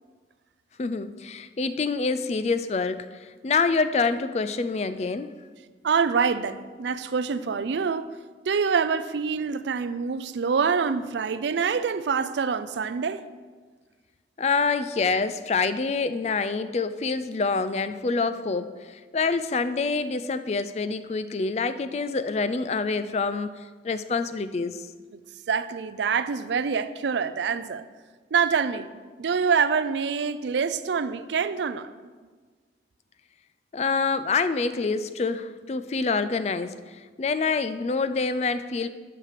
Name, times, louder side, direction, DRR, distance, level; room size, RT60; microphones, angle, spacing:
voice 1, 0.8-5.3 14.4-24.9 33.7-36.8 37.2-38.9, left 4 dB, 35° left, 0.3 m, -26 dB
voice 2, 5.8-8.1 8.5-13.3 25.5-27.8 28.3-28.9 29.2-31.9, right 6 dB, 75° right, 0.4 m, -25 dB
7.6 x 5.9 x 6.7 m
head